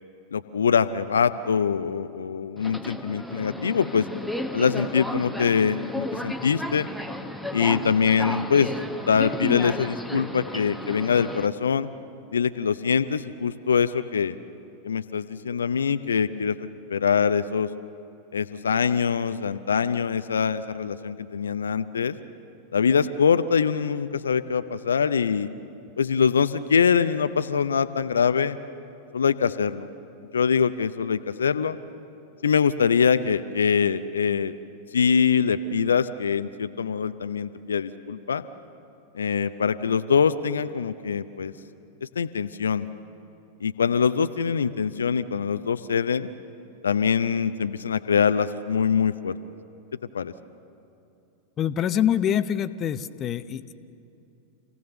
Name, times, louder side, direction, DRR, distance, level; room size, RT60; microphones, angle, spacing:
voice 1, 0.3-4.1 4.5-6.9 7.5-8.8 9.1-11.9 12.3-14.4 14.8-17.7 18.3-22.2 22.7-25.5 26.0-28.6 29.1-29.9 30.3-31.8 32.4-34.6 34.9-38.4 39.1-41.5 42.0-42.9 43.6-46.3 46.8-49.4 50.1-50.3, left 6 dB, 70° left, 11 dB, 0.6 m, -23 dB
Subway metro underground, 2.6-11.5, left 1 dB, ahead, 1.0 m, -33 dB
voice 2, 51.6-53.7, left 9 dB, 30° left, 12 dB, 0.7 m, -25 dB
27.5 x 17.0 x 6.8 m, 2.7 s
figure-of-eight pair, 90°, 0 cm